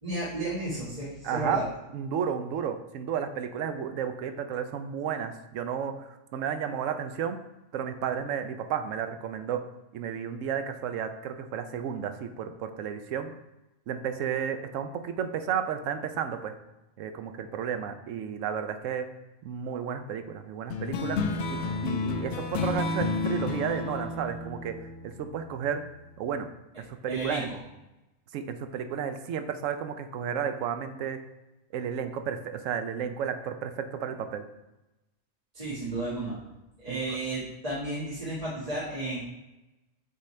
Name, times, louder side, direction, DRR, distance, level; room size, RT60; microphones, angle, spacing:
voice 1, 0.0-1.6 27.1-27.6 35.5-36.3 36.8-39.2, right 2 dB, 30° right, -10 dB, 1.7 m, -33 dB
voice 2, 1.2-1.7 1.9-7.4 7.7-9.7 9.9-13.3 13.9-16.6 17.0-19.1 19.4-24.8 25.0-25.8 26.2-26.5 26.8-27.5 28.3-31.2 31.7-34.4 36.9-37.2, right 7 dB, 75° right, 8 dB, 0.9 m, -32 dB
sound 1, 20.7-25.6, left 4 dB, 65° left, 0.8 m, -31 dB
8.1 x 4.0 x 3.2 m, 0.98 s
omnidirectional pair, 1.4 m